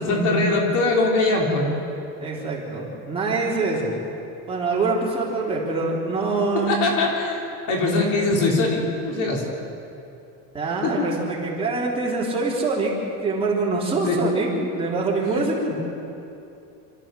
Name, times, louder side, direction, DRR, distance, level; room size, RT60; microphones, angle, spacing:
voice 1, 0.0-1.7 6.7-9.5 10.8-10.9 14.0-14.2 15.3-15.8, left 3 dB, 55° left, 0 dB, 3.8 m, -22 dB
voice 2, 2.2-4.0 4.5-6.9 10.5-12.9 13.2-15.8, right 3 dB, 15° right, -5 dB, 3.5 m, -24 dB
27.0 x 14.0 x 7.6 m, 2.8 s
cardioid pair, 160°, 36 cm